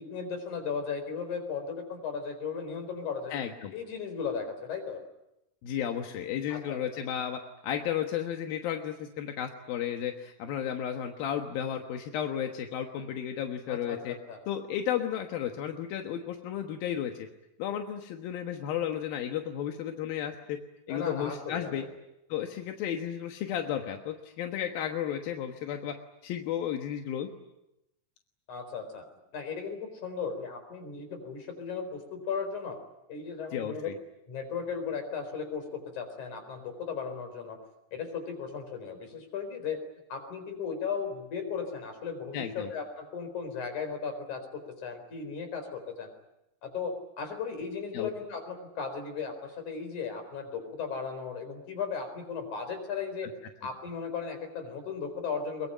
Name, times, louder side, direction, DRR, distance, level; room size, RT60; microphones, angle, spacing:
voice 1, 0.0-3.3 3.7-5.0 6.5-7.0 13.7-14.4 20.9-21.7 28.5-29.0 29.3-32.8 33.1-33.9 34.3-37.6 37.9-39.8 40.1-46.1 46.6-53.3 53.6-55.7, left 6 dB, 55° left, 7 dB, 5.6 m, -36 dB
voice 2, 3.3-3.7 5.6-14.1 14.5-17.3 17.6-20.6 20.9-21.8 22.3-26.0 26.2-27.3 33.5-33.9 42.3-42.7 47.9-48.1, left 9 dB, 85° left, 4 dB, 3.2 m, -33 dB
23.0 x 23.0 x 9.9 m, 0.90 s
omnidirectional pair, 4.1 m